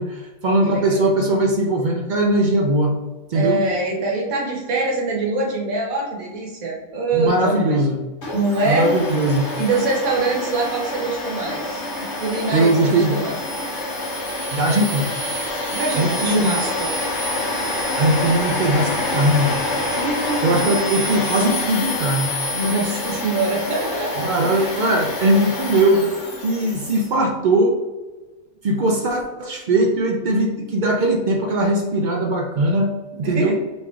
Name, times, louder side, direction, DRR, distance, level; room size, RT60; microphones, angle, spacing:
voice 1, 0.0-3.0 3.3-3.6 7.1-8.0 8.6-9.5 12.5-13.2 14.5-15.1 15.9-16.5 18.0-19.6 20.4-22.3 24.2-26.1 26.4-27.7 28.6-32.9 33.2-33.5, right 1 dB, 70° right, 1 dB, 0.4 m, -19 dB
voice 2, 0.6-1.1 3.3-7.8 8.3-9.0 9.6-13.4 15.7-16.9 19.9-20.6 22.5-24.7 33.2-33.5, right 3 dB, 85° right, -1 dB, 1.4 m, -24 dB
Domestic sounds home sounds, 8.2-27.1, left 2 dB, 60° left, 1.0 m, -27 dB
5.3 x 3.0 x 2.4 m, 1.2 s
omnidirectional pair, 1.4 m